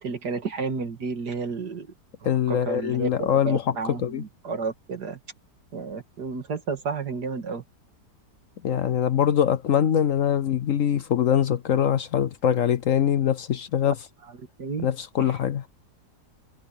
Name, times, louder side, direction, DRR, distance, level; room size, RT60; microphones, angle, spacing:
voice 1, 0.0-1.9 2.5-5.2 5.7-7.6 14.6-14.9, right 4 dB, 70° right, 2.4 m, -31 dB
voice 2, 2.2-4.2 8.6-14.0 14.8-15.6, left 9 dB, 60° left, 0.9 m, -23 dB
omnidirectional pair, 1.8 m